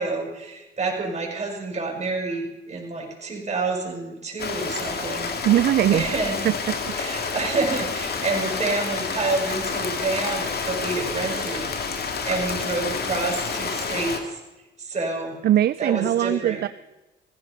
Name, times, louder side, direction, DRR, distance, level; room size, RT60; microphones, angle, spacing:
voice 1, 0.0-5.3 5.9-6.4 6.9-11.7 12.2-14.4 14.8-15.4 15.8-16.6, right 3 dB, 35° right, 0 dB, 6.0 m, -28 dB
Rain, 4.4-14.2, left 5 dB, 50° left, 2.3 m, -29 dB
voice 2, 5.4-6.0 6.4-6.7 15.4-16.7, right 12 dB, 55° right, 16 dB, 0.4 m, -20 dB
17.0 x 15.0 x 5.4 m, 1.0 s
cardioid pair, 90°, 20 cm